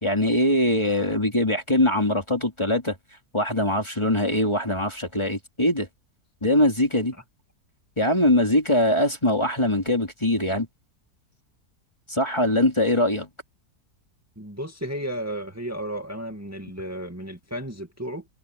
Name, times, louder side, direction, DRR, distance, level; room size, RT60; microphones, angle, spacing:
voice 1, 0.0-2.9 3.3-5.9 6.4-7.1 8.0-10.7 12.1-13.3, left 1 dB, 15° left, 2.7 m, -22 dB
voice 2, 14.4-18.3, equal, 10° right, 2.2 m, -33 dB
omnidirectional pair, 1.7 m